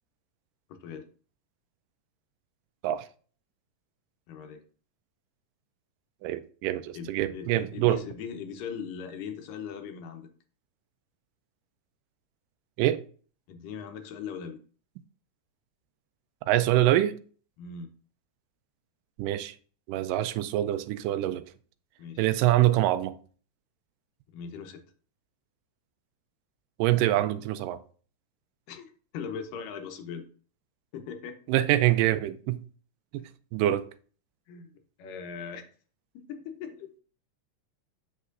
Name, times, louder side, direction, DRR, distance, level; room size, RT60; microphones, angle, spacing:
voice 1, 0.7-1.1 4.3-4.6 6.9-10.3 13.5-14.6 17.6-17.9 22.0-22.3 24.3-24.8 28.7-30.3 30.9-31.4 33.2-33.3 34.5-35.7 36.1-37.0, left 6 dB, 85° left, 2.6 m, -40 dB
voice 2, 6.2-8.0 12.8-13.0 16.5-17.2 19.2-19.5 19.9-21.4 22.2-23.2 26.8-27.8 31.5-32.6 33.1-33.9, right 14 dB, 90° right, 2.2 m, -25 dB
8.1 x 6.6 x 2.5 m
omnidirectional pair, 3.7 m